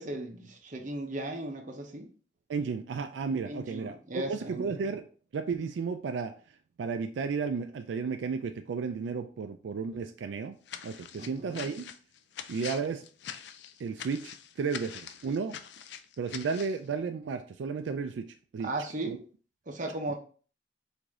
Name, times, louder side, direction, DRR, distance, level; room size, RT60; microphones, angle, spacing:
voice 1, 0.0-2.1 3.4-4.8 11.2-11.6 18.6-19.2 19.7-20.2, right 2 dB, 45° right, 2 dB, 0.8 m, -37 dB
voice 2, 2.5-5.0 5.3-10.6 10.8-11.8 12.5-13.1 13.8-15.6 16.2-18.3 18.5-18.7 19.1-19.2, right 5 dB, 85° right, 7 dB, 0.3 m, -33 dB
sound 1, 10.7-16.8, left 8 dB, 70° left, 0.4 m, -44 dB
4.8 x 2.7 x 3.6 m, 0.40 s
head